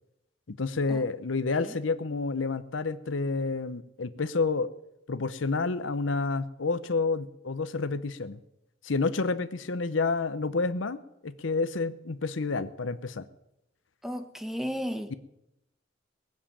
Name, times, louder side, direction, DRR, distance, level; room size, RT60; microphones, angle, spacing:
voice 1, 0.5-4.7 5.1-8.4 8.8-13.3, left 3 dB, 80° left, 13 dB, 0.8 m, -29 dB
voice 2, 14.0-15.1, equal, ahead, 8 dB, 1.1 m, -34 dB
19.0 x 7.4 x 8.7 m, 0.86 s
head